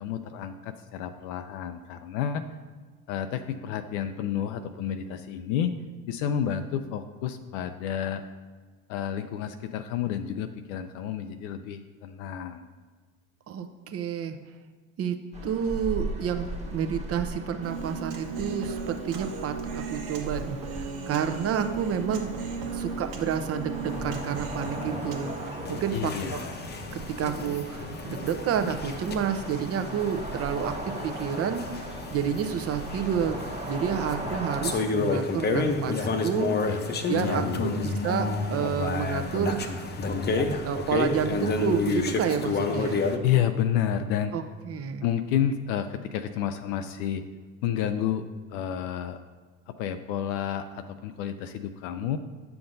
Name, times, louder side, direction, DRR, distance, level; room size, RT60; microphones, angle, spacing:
voice 1, 0.0-2.5 3.1-5.7 6.1-8.2 8.9-12.7 25.9-26.5 36.7-36.8 37.1-37.8 43.2-44.3 45.0-47.2 47.6-48.2 48.5-49.2 49.7-52.2, left 9 dB, 75° left, 8 dB, 0.5 m, -30 dB
voice 2, 13.5-14.4 15.0-15.2 15.4-22.3 22.7-26.4 26.9-33.4 33.7-36.7 37.1-39.9 40.4-43.0 44.3-45.0, right 7 dB, 40° right, 8 dB, 0.7 m, -30 dB
sound 1, 15.3-34.8, right 2 dB, 15° right, 1.1 m, -39 dB
Human voice, 17.6-25.6, right 4 dB, 75° right, 1.2 m, -36 dB
sound 2, 23.9-43.2, left 3 dB, 25° left, 0.7 m, -31 dB
8.4 x 5.8 x 2.6 m, 1.4 s
hypercardioid pair, 80°, 38 cm